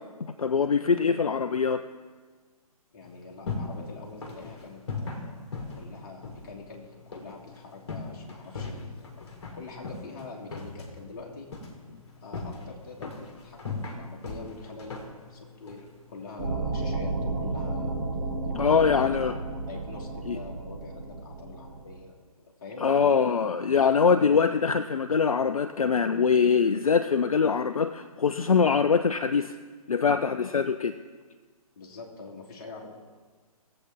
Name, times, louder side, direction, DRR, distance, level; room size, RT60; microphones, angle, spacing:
voice 1, 0.4-1.8 18.5-19.3 20.3-20.4 22.8-29.6 29.9-30.9, left 6 dB, 65° left, 9 dB, 0.4 m, -23 dB
voice 2, 2.9-9.3 9.5-11.5 12.2-18.1 18.4-19.3 19.7-23.3 31.8-32.9, left 3 dB, 30° left, -2 dB, 1.9 m, -44 dB
sound 1, 3.0-16.5, left 3 dB, 50° left, 1.8 m, -40 dB
sound 2, 16.4-22.0, right 3 dB, 45° right, 2.1 m, -32 dB
18.0 x 7.7 x 3.6 m, 1.5 s
figure-of-eight pair, 135°, 19 cm